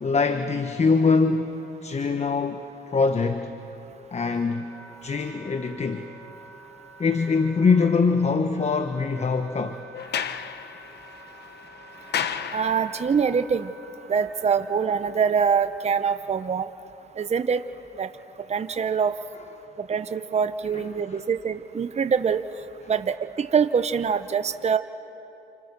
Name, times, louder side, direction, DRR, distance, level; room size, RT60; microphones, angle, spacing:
voice 1, 0.0-3.5 4.1-4.7 5.0-6.1 7.0-9.8 20.7-20.8 21.1-21.2, left 4 dB, 35° left, 1.2 m, -23 dB
Wind instrument woodwind instrument, 3.8-15.2, right 2 dB, 5° left, 5.1 m, -48 dB
Sliding door, 9.9-13.2, left 8 dB, 55° left, 1.0 m, -33 dB
voice 2, 12.5-13.7 14.1-16.7 17.2-17.6 18.0-18.1 18.5-19.2 19.9-22.4 22.9-24.8, right 6 dB, 35° right, 0.9 m, -24 dB
29.5 x 28.0 x 6.8 m
cardioid pair, 90°, 20 cm